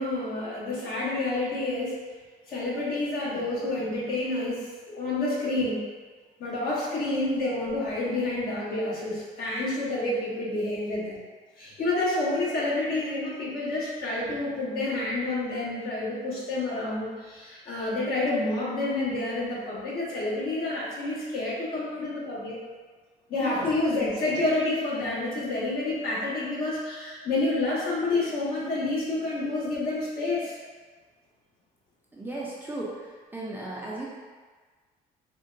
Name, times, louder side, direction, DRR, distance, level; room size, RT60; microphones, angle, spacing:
voice 1, 0.0-1.9 2.5-5.8 6.4-11.2 11.6-22.6 23.3-30.6, left 2 dB, 60° left, -7 dB, 1.2 m, -29 dB
voice 2, 32.1-34.1, right 2 dB, 10° right, -6 dB, 0.4 m, -36 dB
3.7 x 2.1 x 2.5 m, 1.5 s
cardioid pair, 110°, 17 cm